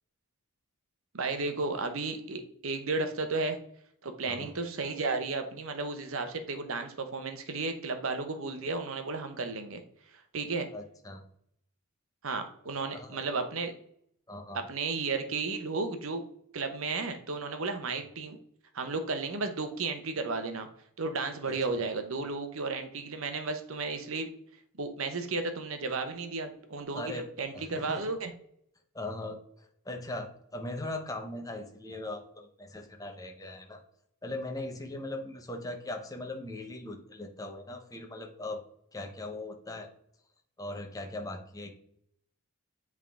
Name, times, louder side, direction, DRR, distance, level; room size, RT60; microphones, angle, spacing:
voice 1, 1.1-3.6 4.0-9.8 10.3-10.7 12.2-13.7 14.7-16.2 16.5-18.4 18.7-20.7 21.0-24.3 24.8-28.3, right 3 dB, 65° right, 7 dB, 0.8 m, -33 dB
voice 2, 10.7-11.2 12.7-13.3 14.3-14.7 21.4-21.6 26.9-27.2 27.5-28.0 28.9-33.8 34.2-38.6 38.9-39.9 40.6-41.7, left 2 dB, 15° left, 4 dB, 0.8 m, -39 dB
8.1 x 3.6 x 3.6 m, 0.69 s
head